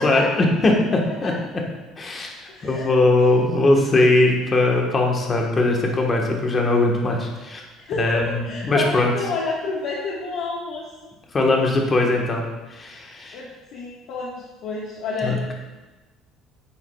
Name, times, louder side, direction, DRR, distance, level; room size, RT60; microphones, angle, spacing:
voice 1, 0.0-1.3 2.0-2.3 2.6-7.6 8.0-9.1 11.3-12.4 12.7-13.4 15.2-15.5, left 2 dB, 25° left, 0 dB, 1.2 m, -20 dB
voice 2, 2.5-2.9 7.8-10.9 13.3-15.4, left 3 dB, 60° left, -5 dB, 1.3 m, -29 dB
9.8 x 8.0 x 2.3 m, 1.2 s
cardioid pair, 155°, 0 cm